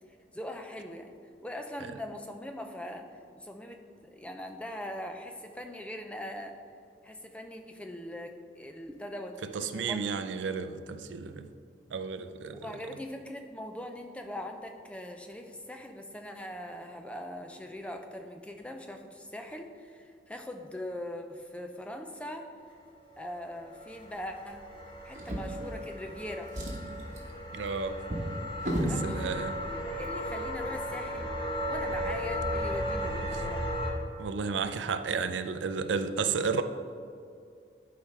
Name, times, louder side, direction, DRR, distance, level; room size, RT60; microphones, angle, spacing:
voice 1, 0.3-1.1 1.4-3.0 3.3-6.5 7.0-10.0 12.5-22.5 23.2-24.6 25.0-26.5 28.9-33.7, left 1 dB, 5° left, 0.4 m, -41 dB
voice 2, 9.4-11.5 11.9-12.8 27.5-28.0 28.8-29.6 33.3-33.4 34.2-36.6, right 5 dB, 90° right, 0.4 m, -32 dB
sound 1, 23.4-33.9, equal, 25° left, 0.9 m, -35 dB
Drawer open or close, 25.1-26.1 26.4-29.0 29.9-30.1 30.4-30.5, equal, 45° right, 1.1 m, -35 dB
12.0 x 4.7 x 3.2 m
head